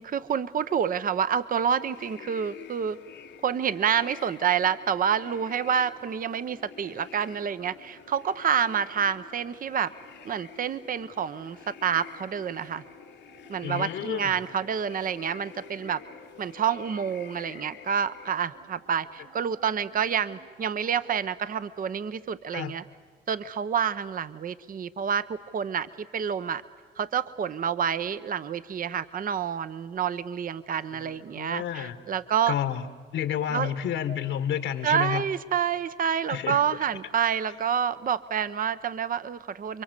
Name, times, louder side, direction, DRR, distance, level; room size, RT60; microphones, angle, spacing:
voice 1, 0.0-3.0 3.4-9.9 10.2-12.8 13.5-16.0 16.4-22.8 23.3-26.6 27.0-32.5 33.5-33.7 34.8-39.8, right 8 dB, 45° right, 14 dB, 0.8 m, -28 dB
sound 1, 1.7-18.3, left 9 dB, 60° left, 1.0 m, -48 dB
sound 2, 3.6-21.3, right 5 dB, 85° right, 3.1 m, -56 dB
voice 2, 13.6-14.4 22.5-22.7 30.9-32.0 32.5-32.9 33.1-35.2 36.3-36.6, left 9 dB, 80° left, 10 dB, 1.6 m, -30 dB
29.0 x 23.5 x 8.2 m, 1.5 s
cardioid pair, 90°, 20 cm